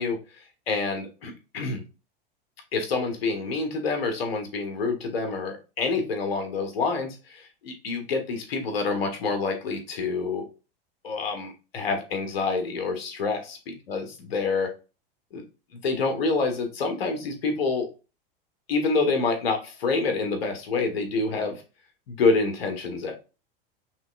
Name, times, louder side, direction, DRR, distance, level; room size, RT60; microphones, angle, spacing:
voice 1, 0.0-1.8 2.7-10.5 11.0-14.7 15.3-15.4 15.7-17.9 18.7-21.6 22.1-23.2, left 4 dB, 85° left, 5 dB, 1.6 m, -27 dB
5.5 x 3.3 x 2.6 m, 0.31 s
hypercardioid pair, 105°, 29 cm